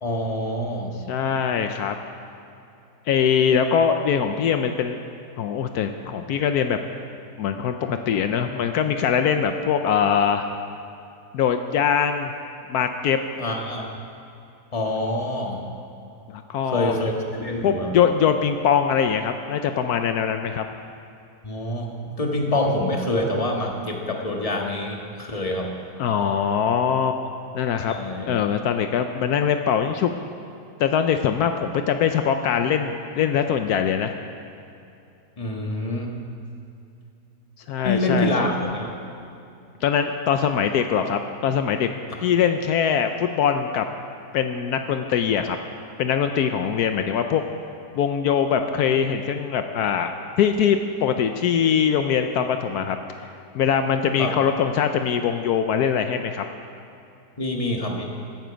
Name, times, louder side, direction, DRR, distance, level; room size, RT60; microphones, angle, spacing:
voice 1, 0.0-1.0 13.4-13.9 14.7-15.6 16.6-17.9 21.4-25.7 27.9-28.3 35.4-36.1 37.8-38.9 54.2-54.3 57.4-58.0, left 1 dB, 25° left, 0 dB, 1.6 m, -26 dB
voice 2, 1.1-1.9 3.1-5.0 5.4-6.8 7.4-10.5 11.3-12.3 12.7-13.2 16.3-17.0 17.6-20.6 26.0-27.3 27.5-27.9 28.3-30.1 30.8-34.2 37.7-38.3 39.8-41.9 42.2-43.9 44.3-45.6 46.0-47.4 47.9-50.1 50.4-53.3 53.5-56.5, left 7 dB, 75° left, 7 dB, 1.2 m, -22 dB
16.5 x 12.0 x 5.2 m, 2.7 s
omnidirectional pair, 1.7 m